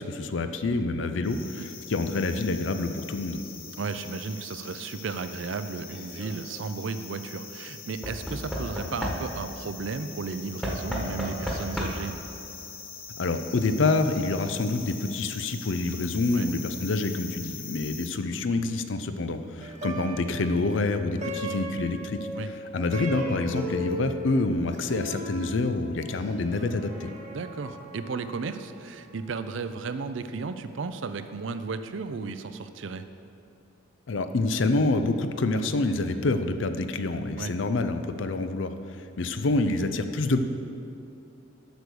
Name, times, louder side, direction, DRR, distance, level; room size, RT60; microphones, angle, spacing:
voice 1, 0.0-3.4 13.2-22.3 22.7-27.1 34.1-40.4, left 2 dB, 70° left, 9 dB, 0.5 m, -27 dB
sound 1, 1.2-18.1, left 6 dB, 50° left, 1.1 m, -43 dB
voice 2, 3.8-12.1 16.3-16.5 22.3-22.5 27.3-33.1 37.4-37.5, right 4 dB, 70° right, 10 dB, 0.5 m, -34 dB
Knock / Wood, 5.8-6.3 8.0-9.6 10.6-12.2 13.3-13.4 13.6-13.7, equal, ahead, 1.3 m, -33 dB
Plucked string instrument, 19.6-29.0, equal, 40° right, 1.1 m, -37 dB
8.2 x 6.3 x 6.8 m, 2.7 s
head